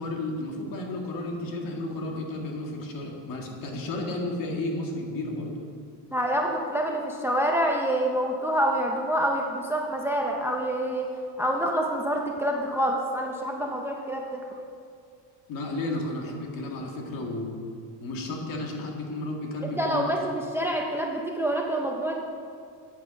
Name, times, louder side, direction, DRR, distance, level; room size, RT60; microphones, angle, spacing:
voice 1, 0.0-5.5 15.5-17.6 18.0-20.1, left 2 dB, 55° left, 1 dB, 1.9 m, -32 dB
voice 2, 6.1-11.1 11.4-14.5 19.6-22.2, right 1 dB, 5° right, 1 dB, 0.5 m, -27 dB
9.2 x 8.4 x 5.9 m, 2.3 s
cardioid pair, 155°, 41 cm